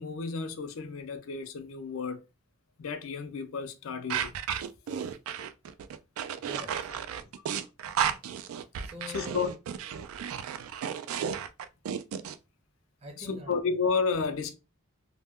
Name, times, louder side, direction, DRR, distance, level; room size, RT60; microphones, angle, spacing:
voice 1, 0.0-2.2 2.8-4.4 6.7-6.8 9.1-9.5 13.2-14.6, left 5 dB, 70° left, 0.4 m, -32 dB
sound 1, 4.1-12.3, right 8 dB, 80° right, 0.3 m, -33 dB
voice 2, 6.4-7.3 8.8-9.5 13.0-13.6, left 2 dB, 30° right, 0.7 m, -45 dB
2.1 x 2.1 x 3.5 m
head